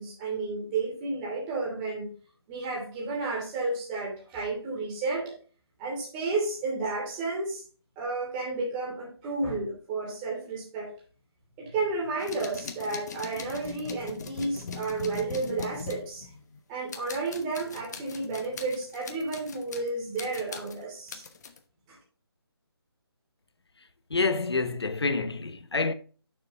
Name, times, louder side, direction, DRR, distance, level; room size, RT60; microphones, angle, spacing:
voice 1, 0.0-2.1 2.5-5.3 5.8-7.6 8.0-10.9 11.6-16.3 16.7-21.2 21.9-22.0, right 3 dB, 15° right, 2.8 m, -32 dB
sound 1, 12.2-16.6 16.9-19.9 20.2-21.6, left 5 dB, 40° left, 1.1 m, -41 dB
voice 2, 24.1-25.9, left 3 dB, 80° left, 1.0 m, -27 dB
9.4 x 6.8 x 2.6 m
figure-of-eight pair, 155°, 14 cm